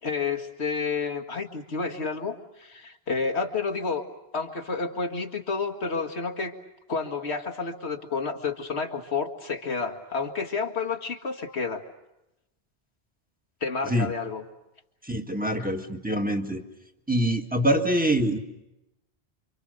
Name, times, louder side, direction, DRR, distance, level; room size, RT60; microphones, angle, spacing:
voice 1, 0.0-4.0 4.3-6.6 6.9-11.8 13.6-14.4, left 4 dB, 90° left, 6 dB, 2.1 m, -30 dB
voice 2, 15.1-16.6 17.1-18.4, right 1 dB, 10° right, 4 dB, 1.7 m, -25 dB
28.0 x 25.5 x 6.6 m, 0.93 s
omnidirectional pair, 1.1 m